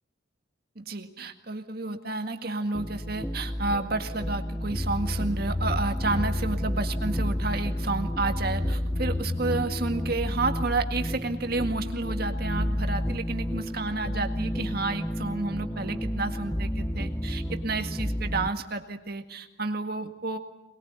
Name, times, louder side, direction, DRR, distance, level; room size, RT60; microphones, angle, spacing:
voice 1, 0.8-20.4, right 3 dB, 50° right, 6 dB, 1.9 m, -31 dB
sound 1, 2.7-18.5, left 1 dB, 10° left, 0.9 m, -30 dB
24.0 x 21.0 x 9.5 m, 0.91 s
head